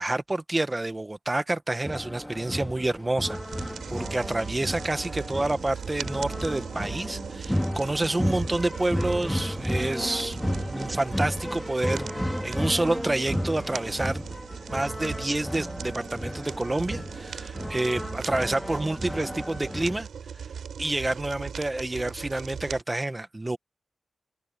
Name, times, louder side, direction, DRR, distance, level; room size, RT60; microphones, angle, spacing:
voice 1, 0.0-10.4 10.7-14.2 14.7-20.1 20.3-20.4 20.8-23.6, right 2 dB, 25° right, 1.6 m, -28 dB
sound 1, 1.8-20.0, equal, 5° left, 2.4 m, -33 dB
sound 2, 3.3-22.8, right 7 dB, 90° right, 7.1 m, -39 dB
cardioid pair, 55°, 0 cm